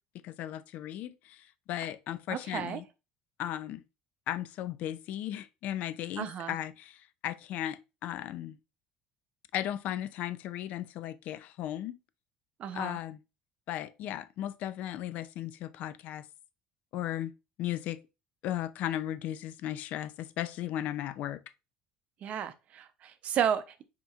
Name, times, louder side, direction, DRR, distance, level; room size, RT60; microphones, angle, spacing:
voice 1, 0.2-2.8 3.4-3.8 4.3-8.6 9.5-12.0 12.7-13.2 13.7-16.3 16.9-17.3 17.6-18.0 18.4-21.4, left 12 dB, 60° left, 0.3 m, -36 dB
voice 2, 2.3-2.8 6.2-6.6 12.6-13.0 22.2-23.8, right 8 dB, 50° right, 0.5 m, -33 dB
5.4 x 2.8 x 2.3 m
cardioid pair, 110°, 3 cm